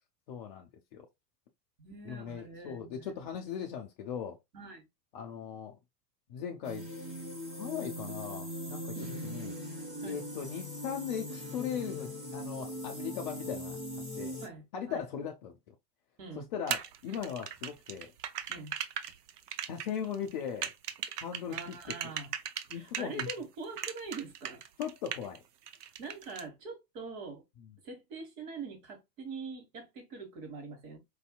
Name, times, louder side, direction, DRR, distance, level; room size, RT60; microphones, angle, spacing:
voice 1, 0.3-1.1 2.0-4.4 5.1-5.8 6.3-6.9 7.5-8.9 9.2-9.5 10.0-13.8 14.2-14.4 14.7-15.7 16.4-18.1 19.7-20.7 21.2-21.6 22.7-23.3 24.8-25.4, left 8 dB, 30° left, 0.4 m, -38 dB
voice 2, 1.8-3.2 4.5-4.8 8.9-9.2 10.0-10.2 14.4-15.0 16.2-16.5 18.5-18.7 21.5-22.3 22.7-24.6 26.0-27.4 27.8-31.0, right 4 dB, 50° right, 1.6 m, -44 dB
sound 1, 6.6-14.5, equal, 85° right, 2.2 m, -40 dB
sound 2, 16.7-23.4 23.8-25.4 25.7-26.4, right 9 dB, 70° right, 0.6 m, -38 dB
4.6 x 2.7 x 2.3 m
figure-of-eight pair, 90°, 50 cm